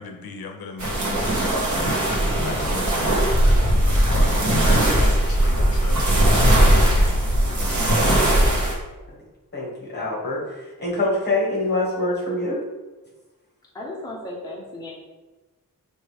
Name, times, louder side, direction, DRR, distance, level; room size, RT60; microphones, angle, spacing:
voice 1, 0.0-3.6 3.9-7.3, left 5 dB, 85° left, 4 dB, 0.5 m, -38 dB
sound 1, 0.8-8.7, right 1 dB, 55° right, 1.0 m, -19 dB
voice 2, 9.5-12.6, left 2 dB, 30° left, -4 dB, 1.3 m, -25 dB
voice 3, 13.7-14.9, left 1 dB, 10° left, -4 dB, 0.6 m, -35 dB
4.7 x 2.7 x 3.3 m, 1.2 s
wide cardioid pair, 175°, 35 cm